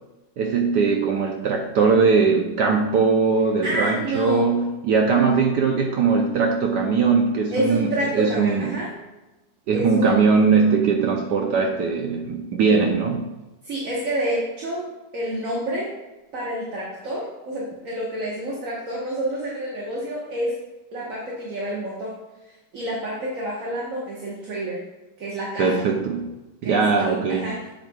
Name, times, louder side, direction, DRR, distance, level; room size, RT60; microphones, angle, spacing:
voice 1, 0.4-8.8 9.7-13.3 25.6-26.3 26.6-27.6, right 5 dB, 70° right, 2 dB, 1.1 m, -20 dB
voice 2, 3.6-4.5 7.5-8.9 9.7-10.3 13.6-14.9 15.1-16.0 16.3-20.6 20.9-22.2 22.7-24.8 25.2-25.8 26.6-27.6, right 1 dB, 45° right, -4 dB, 1.5 m, -28 dB
9.0 x 7.5 x 2.3 m, 1.1 s
omnidirectional pair, 2.3 m